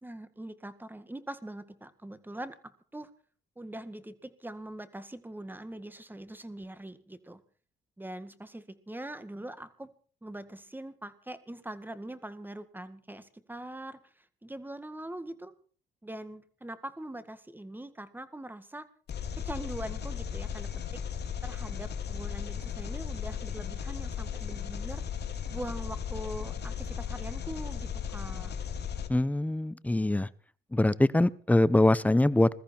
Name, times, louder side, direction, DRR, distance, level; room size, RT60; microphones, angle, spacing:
voice 1, 0.0-2.6 2.9-3.1 3.6-7.4 8.0-9.9 10.2-15.5 16.0-18.9 19.4-21.0 21.4-25.0 25.5-28.5, right 1 dB, 10° right, 12 dB, 1.8 m, -42 dB
Engine, 19.1-29.1, left 8 dB, 55° left, 2.5 m, -36 dB
voice 2, 29.1-30.3 30.7-32.5, left 1 dB, 5° left, 18 dB, 0.7 m, -23 dB
21.5 x 14.0 x 4.5 m, 0.42 s
cardioid pair, 90°, 20 cm